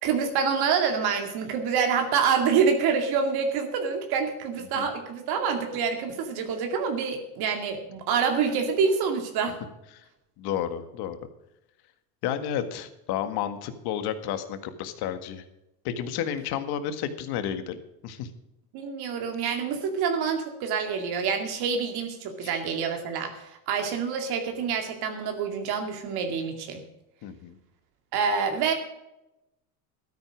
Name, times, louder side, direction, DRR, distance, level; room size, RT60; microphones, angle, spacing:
voice 1, 0.0-9.6 18.7-26.8 28.1-28.7, right 6 dB, 55° right, 4 dB, 2.4 m, -27 dB
voice 2, 10.4-11.2 12.2-15.4 15.8-18.3 22.4-22.6 27.2-27.6, left 9 dB, 55° left, 10 dB, 1.8 m, -31 dB
13.0 x 9.7 x 6.2 m, 0.90 s
supercardioid pair, 125°, 46 cm